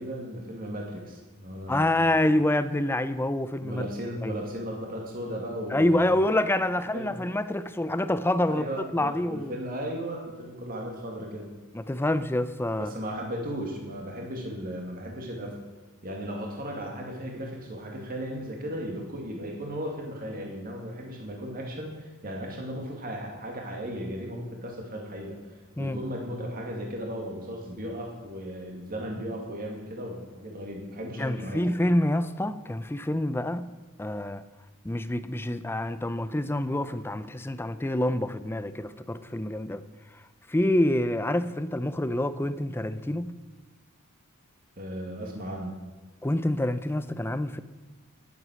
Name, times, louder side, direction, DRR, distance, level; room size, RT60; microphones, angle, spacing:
voice 1, 0.0-2.0 3.6-6.3 6.9-7.1 8.5-11.5 12.8-15.6 16.0-25.4 25.8-31.7 44.8-45.8, equal, 40° right, 0 dB, 2.2 m, -36 dB
voice 2, 1.7-3.8 4.2-4.4 5.7-9.5 11.7-12.9 25.8-26.0 31.2-33.7 34.0-34.4 34.8-39.8 40.5-43.4 46.2-47.6, left 1 dB, 10° left, 13 dB, 0.5 m, -27 dB
11.0 x 11.0 x 6.3 m, 1.2 s
head